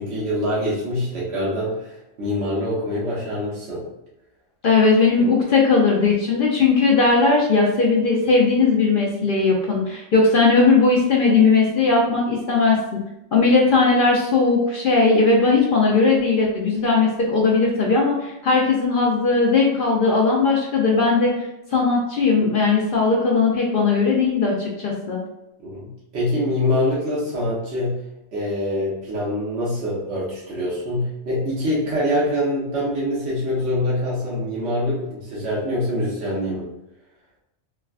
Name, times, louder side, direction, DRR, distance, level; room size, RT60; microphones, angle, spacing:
voice 1, 0.0-3.8 25.6-28.0 28.3-36.7, left 1 dB, 60° right, -7 dB, 1.1 m, -24 dB
voice 2, 4.6-12.8 13.3-21.5 21.7-25.2, left 4 dB, 60° left, -2 dB, 0.6 m, -18 dB
3.3 x 2.1 x 2.3 m, 0.92 s
omnidirectional pair, 1.3 m